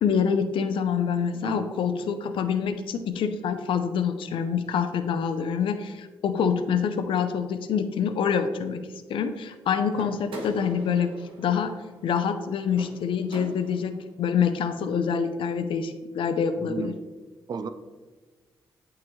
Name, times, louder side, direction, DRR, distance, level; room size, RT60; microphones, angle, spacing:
voice 1, 0.0-8.8 9.1-11.1 11.4-11.8 12.0-13.9 14.2-16.9, left 7 dB, 75° left, 8 dB, 0.5 m, -26 dB
sound 1, 9.9-14.0, right 1 dB, 80° right, 1.2 m, -42 dB
voice 2, 16.6-17.0 17.5-17.7, right 5 dB, 50° right, 10 dB, 0.5 m, -34 dB
8.7 x 3.7 x 3.1 m, 1.3 s
cardioid pair, 75°, 9 cm